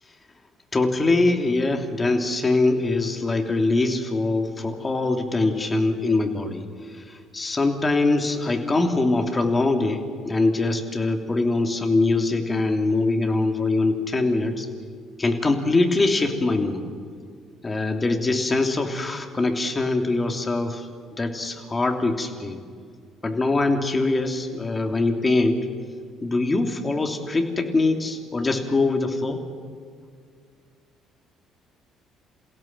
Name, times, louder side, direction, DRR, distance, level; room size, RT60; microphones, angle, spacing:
voice 1, 0.7-14.7 15.2-16.8 17.6-20.9 21.2-22.6 23.2-25.6 26.2-29.4, left 2 dB, 25° left, 4 dB, 3.2 m, -23 dB
28.5 x 16.5 x 7.8 m, 2.1 s
hypercardioid pair, 50°, 0 cm